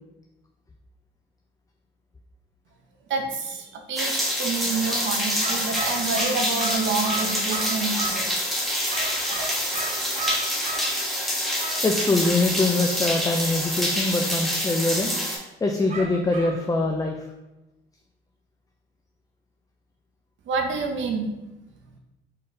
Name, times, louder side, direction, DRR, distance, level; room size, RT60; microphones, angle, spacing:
voice 1, 3.1-8.3 20.5-21.3, right 4 dB, 75° right, 3 dB, 0.8 m, -28 dB
sound 1, 4.0-15.4, equal, ahead, 1.3 m, -26 dB
sound 2, 5.4-8.3 8.9-10.9 11.6-11.8 15.9-16.6, right 3 dB, 35° right, 1.1 m, -33 dB
voice 2, 11.8-15.1 15.6-17.3, left 2 dB, 20° left, 2 dB, 0.4 m, -23 dB
4.2 x 3.7 x 3.3 m, 0.98 s
cardioid pair, 90°, 20 cm